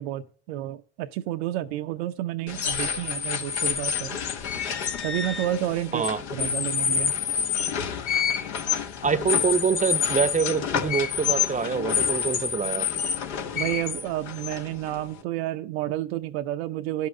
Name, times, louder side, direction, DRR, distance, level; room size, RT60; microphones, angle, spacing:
voice 1, 0.0-4.2 5.0-7.2 13.5-17.1, right 13 dB, 70° right, 0.6 m, -30 dB
sound 1, 2.5-15.2, left 7 dB, 80° left, 1.1 m, -28 dB
voice 2, 9.0-13.0, right 6 dB, 25° right, 0.7 m, -25 dB
11.5 x 5.5 x 7.8 m
hypercardioid pair, 55°, 32 cm